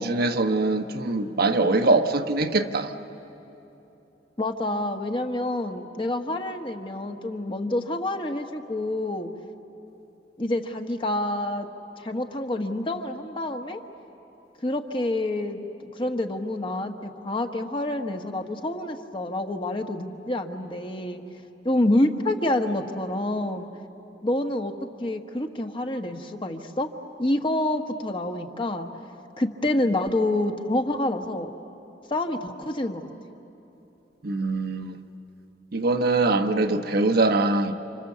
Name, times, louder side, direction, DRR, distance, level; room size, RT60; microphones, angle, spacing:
voice 1, 0.0-2.9 34.2-34.9 35.7-37.7, right 2 dB, 60° right, 1.1 m, -23 dB
voice 2, 4.4-9.3 10.4-11.7 12.0-13.8 14.6-15.6 15.9-21.2 21.6-23.7 24.2-24.7 25.0-26.9 27.2-28.9 29.4-31.5 32.1-33.1, left 1 dB, 30° left, 1.3 m, -27 dB
30.0 x 27.0 x 7.3 m
head